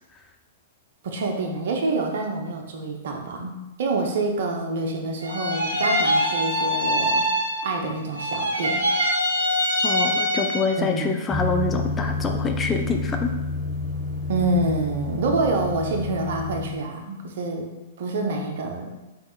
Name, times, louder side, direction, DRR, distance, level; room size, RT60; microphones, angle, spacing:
voice 1, 1.0-3.5 3.8-7.3 7.6-8.8 10.8-11.2 14.3-17.7 18.0-18.9, right 2 dB, 55° right, 3 dB, 0.7 m, -27 dB
sound 1, 5.2-7.9 8.1-10.9, equal, 75° right, 1.3 m, -23 dB
voice 2, 9.8-13.3, left 3 dB, 20° left, 4 dB, 0.4 m, -26 dB
sound 2, 11.3-16.7, left 3 dB, ahead, 1.3 m, -29 dB
4.0 x 3.6 x 2.3 m, 1.0 s
figure-of-eight pair, 105°, 0 cm